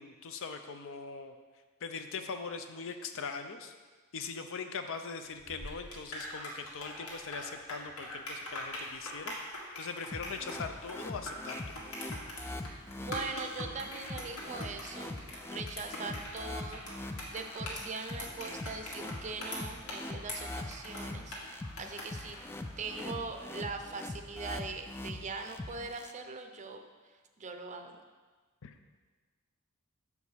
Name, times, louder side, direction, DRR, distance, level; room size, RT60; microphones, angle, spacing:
voice 1, 0.0-1.3 1.8-3.7 4.1-9.3 9.8-11.8 28.6-28.7, left 5 dB, 65° left, 7 dB, 0.6 m, -41 dB
sound 1, 5.4-23.1, left 1 dB, 80° left, 1.7 m, -43 dB
sound 2, 10.1-26.1, left 1 dB, 10° left, 0.3 m, -43 dB
voice 2, 13.0-15.2 15.5-22.4 22.8-26.8 27.4-28.0, right 4 dB, 35° right, 6 dB, 0.6 m, -41 dB
6.9 x 4.8 x 5.5 m, 1.4 s
head